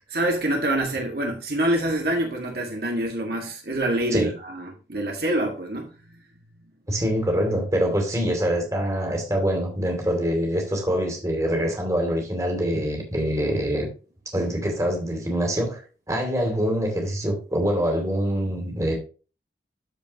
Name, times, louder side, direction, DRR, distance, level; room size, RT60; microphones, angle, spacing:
voice 1, 0.1-6.2, right 1 dB, 55° right, 1.8 m, -26 dB
voice 2, 6.9-13.9 14.3-15.8 16.1-19.0, equal, 20° right, 2.6 m, -24 dB
13.0 x 5.1 x 2.9 m
head